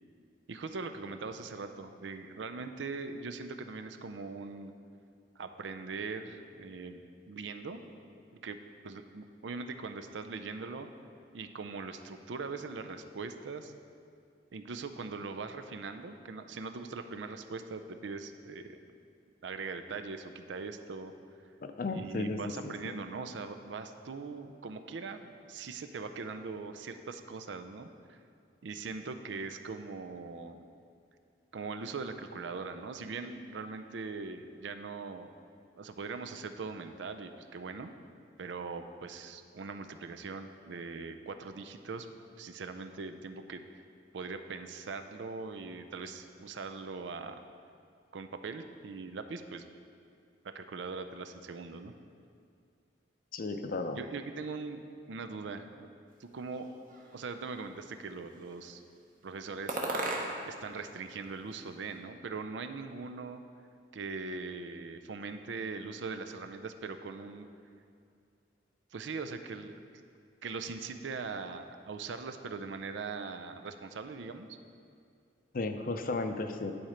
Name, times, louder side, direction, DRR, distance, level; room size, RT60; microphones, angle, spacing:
voice 1, 0.5-4.7 5.4-7.8 8.3-8.6 8.8-10.9 11.3-13.7 14.5-18.8 19.4-21.1 21.9-28.2 28.6-30.6 31.5-35.3 35.8-37.9 38.4-42.1 42.4-43.6 44.1-47.4 48.1-49.6 50.5-51.9 54.0-54.8 55.1-55.9 56.2-56.7 57.1-58.8 59.2-59.8 60.5-63.4 63.9-67.5 68.9-69.7 70.4-74.5, right 4 dB, 85° right, 8 dB, 0.5 m, -41 dB
voice 2, 21.6-22.5 22.8-22.9 53.3-54.0 75.5-76.7, left 3 dB, 50° left, 7 dB, 0.5 m, -34 dB
sound 1, 56.5-57.5 58.1-58.8 59.7-60.6 60.9-62.0, right 2 dB, 50° right, 1.1 m, -38 dB
10.5 x 4.3 x 5.1 m, 2.4 s
head